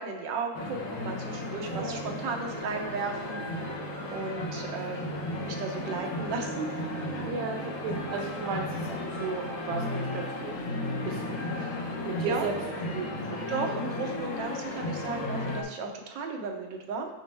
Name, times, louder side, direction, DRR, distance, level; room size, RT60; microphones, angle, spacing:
voice 1, 0.0-3.7 4.1-6.7 12.2-12.5 13.5-17.1, right 4 dB, 70° right, 2 dB, 1.5 m, -35 dB
sound 1, 0.5-15.6, left 1 dB, 50° left, 1.0 m, -34 dB
voice 2, 1.7-2.0 7.2-8.9 9.2-10.5 11.0-11.2 12.0-12.5 12.9-13.8, right 4 dB, 90° right, 1 dB, 1.5 m, -35 dB
6.5 x 5.2 x 3.4 m, 1.1 s
omnidirectional pair, 2.2 m